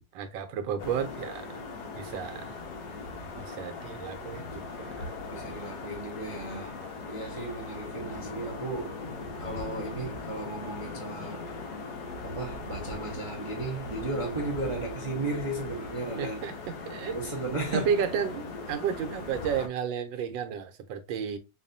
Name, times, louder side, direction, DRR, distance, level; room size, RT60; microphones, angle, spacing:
voice 1, 0.0-1.6 1.9-2.6 3.4-5.1 7.4-7.5 16.1-17.3 17.7-21.4, right 7 dB, 85° right, 1.4 m, -33 dB
sound 1, 0.8-19.7, left 3 dB, 65° left, 1.4 m, -39 dB
voice 2, 5.3-6.8 7.1-9.0 9.4-11.4 12.2-16.4 17.1-17.9, right 2 dB, 55° right, 0.3 m, -35 dB
4.8 x 2.6 x 2.6 m
omnidirectional pair, 2.0 m